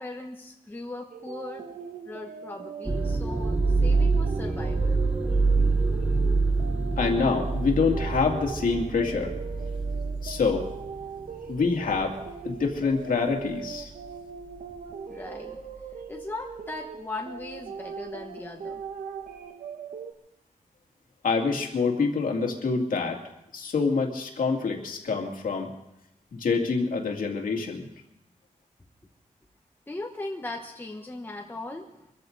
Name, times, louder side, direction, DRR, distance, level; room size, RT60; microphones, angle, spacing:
voice 1, 0.0-1.7 2.0-5.0 15.1-15.6 16.1-18.8 29.9-32.1, left 2 dB, 15° left, 0 dB, 1.1 m, -38 dB
sound 1, 1.1-20.1, right 6 dB, 80° right, 1.2 m, -40 dB
sound 2, 2.9-12.3 12.7-13.1 13.8-14.1, right 3 dB, 10° right, 0.9 m, -26 dB
voice 2, 7.0-9.4 10.2-10.7 11.5-12.2 12.4-13.9 21.2-23.2 23.5-25.7 26.3-27.8, left 4 dB, 80° left, 2 dB, 2.5 m, -26 dB
24.5 x 14.0 x 4.0 m, 0.84 s
wide cardioid pair, 155°, 14 cm